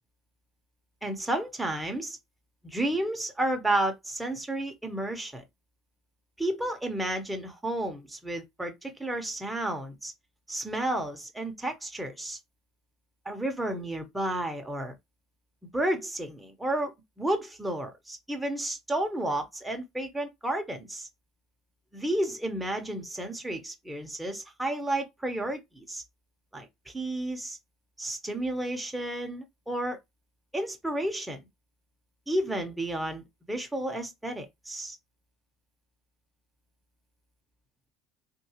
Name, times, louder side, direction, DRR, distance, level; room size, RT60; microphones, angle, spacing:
voice 1, 1.0-2.2 2.6-5.4 6.4-10.1 10.5-12.4 13.3-14.9 15.7-16.9 17.2-21.1 21.9-26.0 26.5-27.6 28.0-30.0 30.5-31.4 32.3-35.0, right 1 dB, 5° right, 0.9 m, -32 dB
3.6 x 2.6 x 2.8 m
cardioid pair, 125°, 0 cm